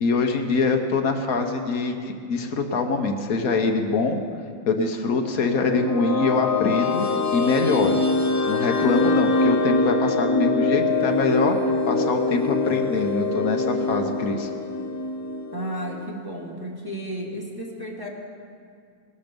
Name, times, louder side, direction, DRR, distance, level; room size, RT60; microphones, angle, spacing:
voice 1, 0.0-4.2 4.7-7.1 7.3-8.0 8.5-11.6 11.9-14.5, left 4 dB, 75° left, 4 dB, 1.5 m, -24 dB
sound 1, 5.3-16.1, left 3 dB, 25° left, 0.4 m, -24 dB
voice 2, 15.5-18.1, right 1 dB, 15° right, -2 dB, 1.6 m, -33 dB
19.5 x 12.0 x 5.2 m, 2.3 s
omnidirectional pair, 1.6 m